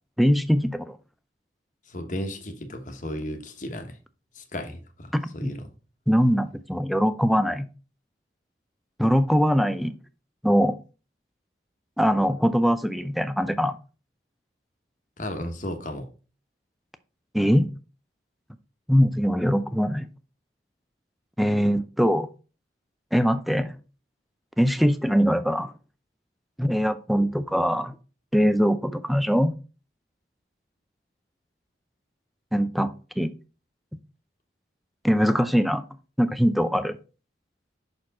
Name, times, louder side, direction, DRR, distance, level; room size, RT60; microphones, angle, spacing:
voice 1, 0.2-1.0 5.1-5.5 6.1-7.7 9.0-9.9 10.4-10.7 12.0-13.7 17.3-17.7 18.9-20.1 21.4-22.3 23.1-23.8 24.6-25.7 26.6-27.9 28.3-29.5 32.5-33.3 35.0-35.8 36.2-37.0, equal, ahead, 0.4 m, -22 dB
voice 2, 1.9-4.0 4.3-5.7 15.2-16.1, left 1 dB, 45° left, 1.1 m, -34 dB
6.2 x 4.4 x 4.1 m
head